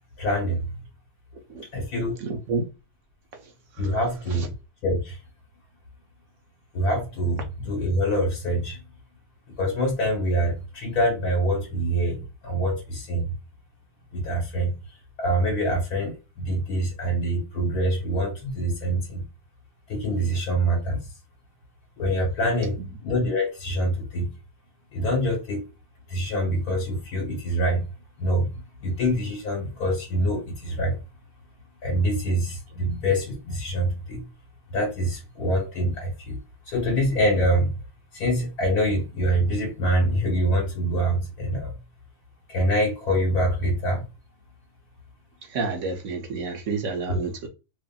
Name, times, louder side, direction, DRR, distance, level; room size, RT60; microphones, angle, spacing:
voice 1, 0.2-0.7 1.7-2.1 3.8-4.5 4.8-5.2 6.7-8.8 9.6-13.3 14.1-14.7 15.2-19.2 19.9-21.0 22.0-22.8 23.0-24.3 24.9-25.6 26.1-27.8 28.2-28.5 28.8-31.0 31.8-34.2 34.7-36.4 36.7-37.7 38.1-41.7 42.5-44.0 47.1-47.2, equal, 70° left, 1.4 m, -25 dB
voice 2, 1.3-1.7 2.2-2.6 3.3-4.0 4.3-4.5 22.8-22.9 45.4-47.5, right 4 dB, 65° right, 0.8 m, -30 dB
2.7 x 2.5 x 2.2 m
omnidirectional pair, 1.7 m